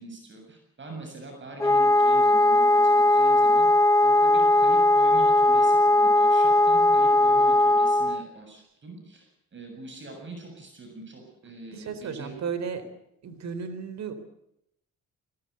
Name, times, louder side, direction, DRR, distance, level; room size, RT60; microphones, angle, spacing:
voice 1, 0.0-3.7 4.0-12.4, right 3 dB, 40° right, 3 dB, 7.3 m, -43 dB
Wind instrument woodwind instrument, 1.6-8.2, left 1 dB, 10° left, 0.8 m, -19 dB
voice 2, 11.7-12.9 13.2-14.1, right 6 dB, 65° right, 10 dB, 4.0 m, -34 dB
21.5 x 19.0 x 8.2 m, 0.79 s
cardioid pair, 90°, 30 cm